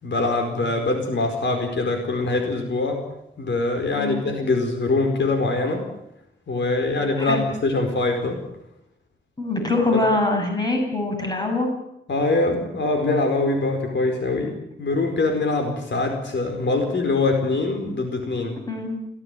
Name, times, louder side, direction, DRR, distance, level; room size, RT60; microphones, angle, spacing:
voice 1, 0.0-3.0 3.4-5.8 6.5-8.4 9.9-10.0 12.1-18.6, left 2 dB, 65° left, 5 dB, 4.8 m, -23 dB
voice 2, 3.9-4.2 7.2-7.4 9.4-11.7 18.7-19.0, left 2 dB, 20° left, 3 dB, 7.7 m, -23 dB
29.5 x 16.5 x 9.3 m, 0.84 s
wide cardioid pair, 150°, 20 cm